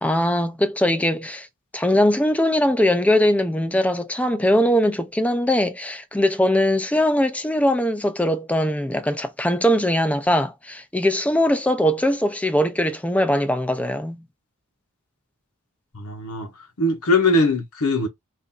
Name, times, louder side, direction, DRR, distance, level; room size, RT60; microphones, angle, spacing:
voice 1, 0.0-1.5 1.7-14.2, left 1 dB, 5° left, 0.5 m, -21 dB
voice 2, 15.9-16.5 16.8-18.1, left 2 dB, 80° left, 0.9 m, -20 dB
2.8 x 2.5 x 3.8 m
head